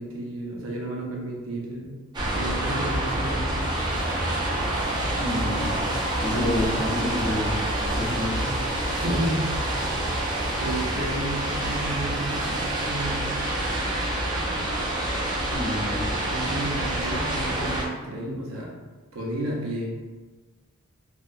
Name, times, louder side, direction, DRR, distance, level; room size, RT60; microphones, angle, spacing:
voice 1, 0.0-1.9 2.3-3.7 8.9-9.5 10.6-13.5 16.3-18.8 19.1-20.0, right 1 dB, 70° right, -2 dB, 0.6 m, -32 dB
sound 1, 2.1-17.8, right 1 dB, 20° right, 0.4 m, -27 dB
voice 2, 5.2-5.8 6.2-7.7 8.0-8.5 15.5-16.1, left 1 dB, 65° left, -6 dB, 0.8 m, -28 dB
2.8 x 2.1 x 2.3 m, 1.3 s
head